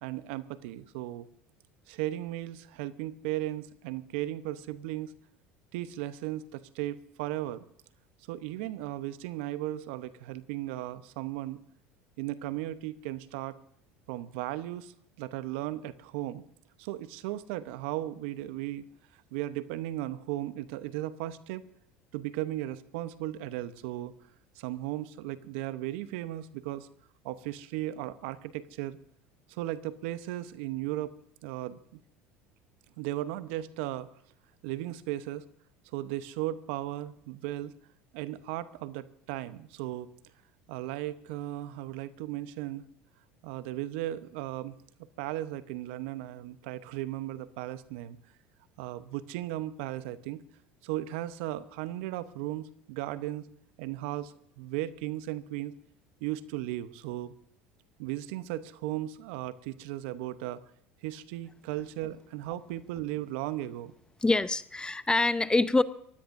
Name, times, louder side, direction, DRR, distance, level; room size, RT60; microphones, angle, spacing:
voice 1, 0.0-1.3 1.9-5.1 5.7-7.6 8.3-11.6 12.2-13.6 14.1-16.4 16.8-18.8 19.3-21.6 22.1-24.1 24.6-26.9 27.2-29.0 29.5-31.1 31.4-32.0 33.0-34.1 34.6-35.4 35.9-37.7 38.1-40.1 40.7-42.8 43.4-48.2 48.8-50.4 50.8-53.5 53.8-55.7 56.2-57.3 58.0-60.6 61.0-63.9, right 14 dB, 70° right, 14 dB, 0.9 m, -36 dB
voice 2, 64.2-65.8, left 2 dB, 15° left, 14 dB, 0.8 m, -25 dB
23.5 x 16.0 x 2.6 m, 0.66 s
hypercardioid pair, 75°, 6 cm